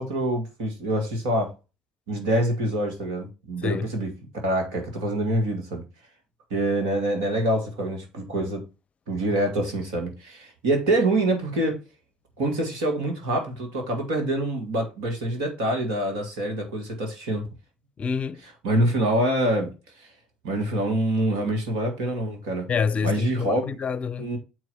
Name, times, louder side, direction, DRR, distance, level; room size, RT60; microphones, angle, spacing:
voice 1, 0.0-1.5 2.1-5.8 6.5-8.7 9.1-11.8 12.4-17.5 18.6-19.7 20.0-20.1 20.4-22.7 23.0-23.8 24.2-24.4, right 1 dB, 80° right, 2.2 m, -25 dB
voice 2, 18.0-18.4 22.7-24.3, left 6 dB, 40° left, 0.6 m, -27 dB
7.5 x 4.6 x 4.2 m
hypercardioid pair, 55°, 3 cm